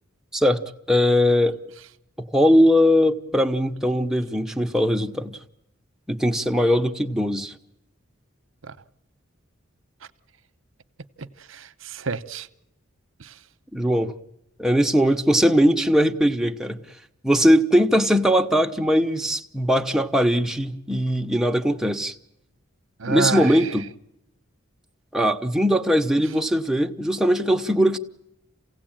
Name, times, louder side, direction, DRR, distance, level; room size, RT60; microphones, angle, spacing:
voice 1, 0.9-1.6 2.3-5.4 6.1-7.5 13.7-14.1 14.6-16.8 17.2-22.1 23.0-23.9 25.1-28.0, equal, 5° right, 1.0 m, -20 dB
voice 2, 11.2-12.5 13.2-13.4 23.0-23.7, right 4 dB, 70° right, 0.9 m, -29 dB
28.0 x 17.0 x 8.9 m
head